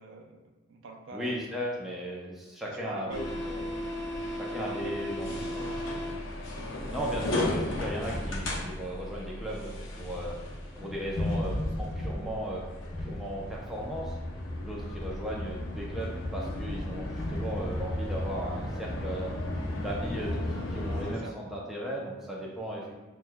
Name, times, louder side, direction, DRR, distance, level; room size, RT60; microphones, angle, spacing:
voice 1, 0.0-1.7 2.7-3.4 4.6-6.1 21.1-21.3, right 2 dB, 75° right, 2 dB, 0.5 m, -45 dB
voice 2, 1.1-3.6 4.3-5.3 5.5-5.7 6.9-10.4 10.8-12.6 13.0-14.2 14.6-19.3 19.8-20.4 20.7-23.0, equal, ahead, -4 dB, 0.5 m, -36 dB
sound 1, 3.1-21.1, left 1 dB, 90° left, 0.7 m, -34 dB
6.0 x 2.3 x 2.2 m, 1.2 s
head